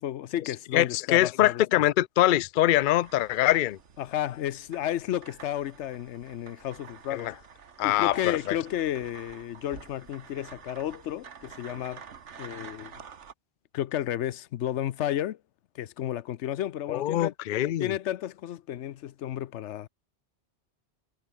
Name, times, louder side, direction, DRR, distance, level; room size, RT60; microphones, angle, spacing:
voice 1, 0.0-1.6 4.0-7.3 7.8-12.0 12.4-12.9 13.7-15.4 15.7-17.3 17.8-19.9, left 12 dB, 85° left, 1.0 m, -32 dB
voice 2, 0.7-3.8 7.1-7.3 7.8-8.6 16.9-17.9, left 14 dB, 55° left, 0.6 m, -24 dB
sound 1, 2.7-13.3, right 7 dB, 90° right, 1.6 m, -49 dB
omnidirectional pair, 1.2 m